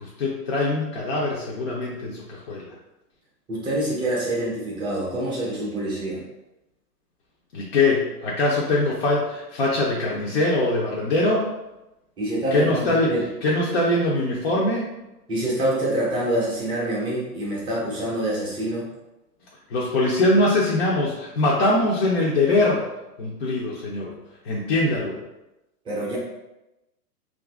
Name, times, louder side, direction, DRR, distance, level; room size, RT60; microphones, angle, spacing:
voice 1, 0.0-2.7 7.5-11.4 12.5-13.1 13.4-14.9 19.7-22.8 23.2-24.1 24.5-25.2, left 2 dB, 40° left, -4 dB, 0.6 m, -22 dB
voice 2, 3.5-6.2 12.2-13.2 15.3-18.9 25.8-26.2, right 1 dB, 10° right, -6 dB, 0.6 m, -26 dB
2.6 x 2.6 x 3.5 m, 0.96 s
hypercardioid pair, 125°, 49 cm